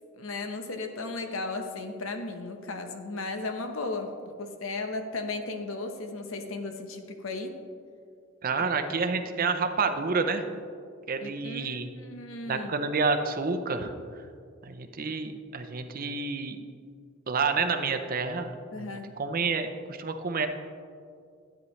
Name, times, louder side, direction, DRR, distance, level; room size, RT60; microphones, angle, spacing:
voice 1, 0.2-7.6 11.2-12.7 18.7-19.1, left 3 dB, 85° left, 6 dB, 0.9 m, -35 dB
voice 2, 8.4-10.4 11.1-11.9 12.5-13.9 14.7-16.6 17.3-18.9 19.2-20.5, right 4 dB, 45° right, 7 dB, 0.6 m, -29 dB
12.5 x 9.1 x 3.2 m, 2.3 s
head